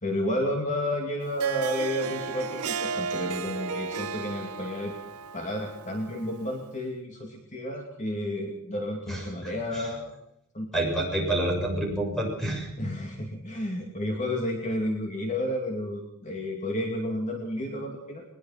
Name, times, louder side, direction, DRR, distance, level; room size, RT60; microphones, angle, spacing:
voice 1, 0.0-4.9 5.3-10.1 10.5-10.7 12.8-18.2, left 1 dB, 35° left, 1 dB, 2.7 m, -31 dB
Harp, 1.2-6.7, right 5 dB, 80° right, 0.8 m, -35 dB
voice 2, 9.1-9.9 10.7-12.7, right 1 dB, ahead, 0 dB, 6.9 m, -28 dB
21.0 x 21.0 x 5.9 m, 0.71 s
head